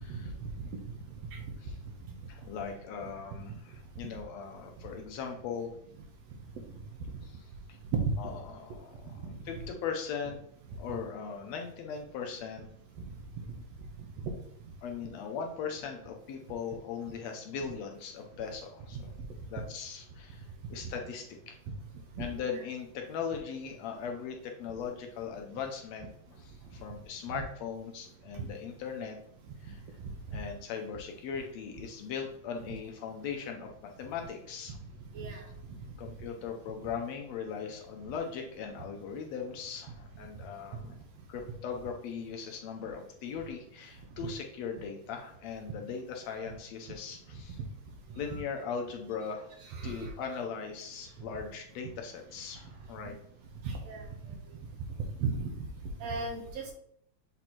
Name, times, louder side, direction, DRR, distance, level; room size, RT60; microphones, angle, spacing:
voice 1, 0.0-0.3 1.6-1.8 2.3-5.7 7.2-7.3 7.7-7.8 8.2-8.9 9.5-10.4 10.8-12.6 14.8-19.1 19.5-21.5 22.2-29.2 29.6-29.8 30.3-34.8 35.3-35.4 36.0-41.0 41.3-47.6 48.2-49.6 49.8-53.2, left 6 dB, 75° left, 3 dB, 1.8 m, -39 dB
voice 2, 49.7-50.1 53.6-54.0 55.2-55.5 56.0-56.7, right 4 dB, 70° right, 3 dB, 1.8 m, -33 dB
7.8 x 3.0 x 4.3 m, 0.70 s
omnidirectional pair, 3.4 m